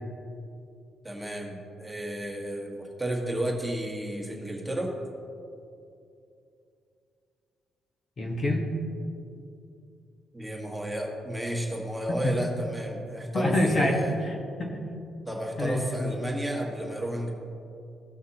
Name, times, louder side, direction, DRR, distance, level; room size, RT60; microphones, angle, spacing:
voice 1, 1.0-4.9 10.3-14.1 15.3-17.3, right 1 dB, 5° right, -1 dB, 1.6 m, -32 dB
voice 2, 8.2-8.7 12.1-12.3 13.3-14.0 14.2-14.8 15.6-16.1, left 1 dB, 40° left, 1 dB, 1.3 m, -27 dB
16.5 x 5.9 x 2.9 m, 2.6 s
cardioid pair, 90°, 0 cm